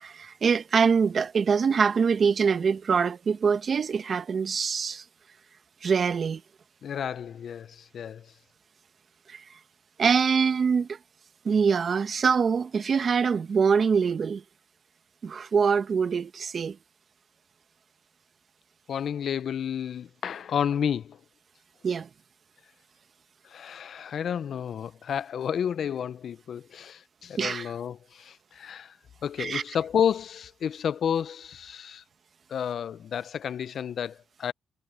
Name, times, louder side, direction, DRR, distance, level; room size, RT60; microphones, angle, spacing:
voice 1, 0.0-5.0 5.8-6.4 9.3-9.4 10.0-11.0 11.4-14.4 15.2-16.8 21.8-22.1 27.4-27.7 29.4-29.6, right 6 dB, 45° right, 1.4 m, -24 dB
voice 2, 6.8-8.3 18.9-21.2 23.4-29.0 29.2-32.0 32.5-34.5, left 8 dB, 60° left, 0.5 m, -31 dB
cardioid pair, 90°, 0 cm